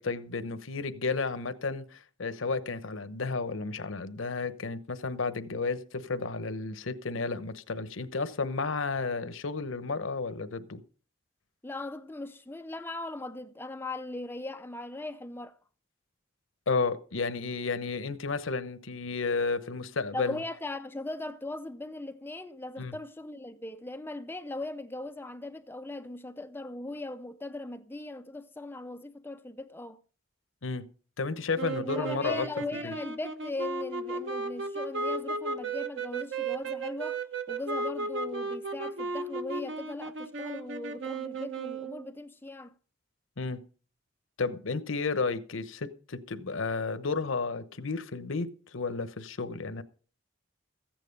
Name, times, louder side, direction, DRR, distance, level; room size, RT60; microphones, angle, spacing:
voice 1, 0.0-10.8 16.7-20.4 22.8-22.9 30.6-30.8 31.2-32.5 32.8-32.9 43.4-43.6 44.4-49.8, left 4 dB, 80° left, 0.9 m, -32 dB
voice 2, 11.6-15.6 20.1-30.0 31.8-37.2 37.5-42.7, left 2 dB, 10° left, 0.5 m, -39 dB
sound 1, 31.6-42.0, right 3 dB, 70° right, 1.1 m, -35 dB
14.5 x 9.1 x 5.2 m
head